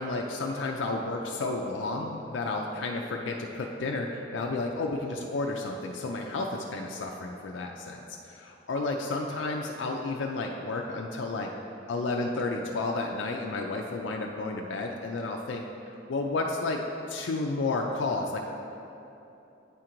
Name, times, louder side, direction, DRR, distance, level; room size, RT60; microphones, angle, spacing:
voice 1, 0.0-11.5 11.9-16.8 17.1-18.4, left 3 dB, 85° left, 1 dB, 0.4 m, -32 dB
9.0 x 4.5 x 3.8 m, 2.9 s
head